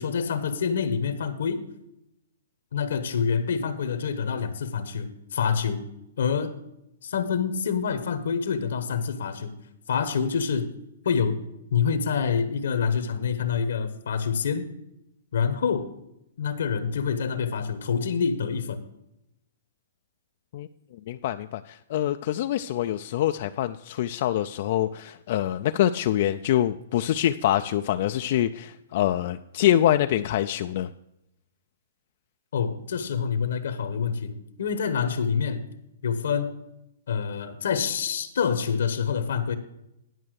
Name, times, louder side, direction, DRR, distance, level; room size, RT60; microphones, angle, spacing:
voice 1, 0.0-1.6 2.7-5.8 6.2-6.6 7.0-9.6 9.9-10.7 11.0-11.4 11.7-14.7 15.3-15.9 16.4-18.8 32.5-35.6 36.0-36.5 37.1-39.6, left 6 dB, 75° left, 10 dB, 1.0 m, -26 dB
voice 2, 21.1-30.9, left 12 dB, 50° left, 8 dB, 0.3 m, -25 dB
11.0 x 5.5 x 6.4 m, 0.85 s
hypercardioid pair, 145°, 0 cm